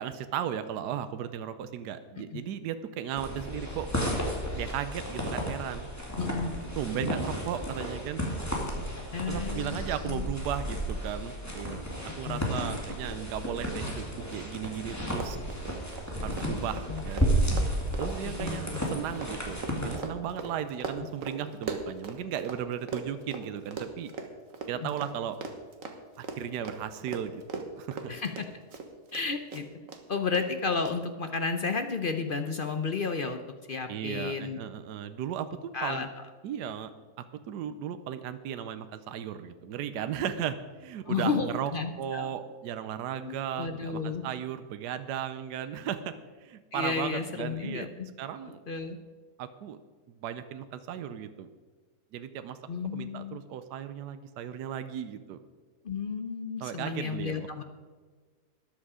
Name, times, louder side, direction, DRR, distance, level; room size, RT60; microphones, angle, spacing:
voice 1, 0.0-3.9 4.5-5.9 6.8-8.2 9.3-11.8 12.2-15.4 15.6-15.7 16.2-17.3 18.0-24.1 24.7-25.4 26.2-28.1 33.9-36.1 36.4-36.9 37.2-41.7 42.0-46.1 46.4-47.9 48.2-48.6 49.4-49.8 50.1-51.5 52.1-52.6 52.9-55.4 56.6-57.6, right 9 dB, 80° right, 10 dB, 1.2 m, -36 dB
sound 1, 3.2-20.0, equal, 10° left, 2.3 m, -33 dB
voice 2, 6.2-6.5 9.1-9.8 10.0-10.2 12.2-12.6 16.4-16.5 16.9-17.0 18.2-18.8 24.8-24.9 28.1-28.5 29.1-29.6 30.1-33.4 33.7-34.6 35.7-36.1 41.1-42.3 43.2-44.3 46.7-48.1 48.7-49.0 52.7-53.4 55.8-57.6, left 5 dB, 55° left, 7 dB, 0.6 m, -32 dB
Run, 14.3-14.4 14.7-14.8 15.1-22.6 22.9-29.2 29.5-30.0 30.3-30.4 30.8-30.9, right 5 dB, 55° right, 1.6 m, -39 dB
13.5 x 10.5 x 4.9 m, 1.5 s
omnidirectional pair, 1.8 m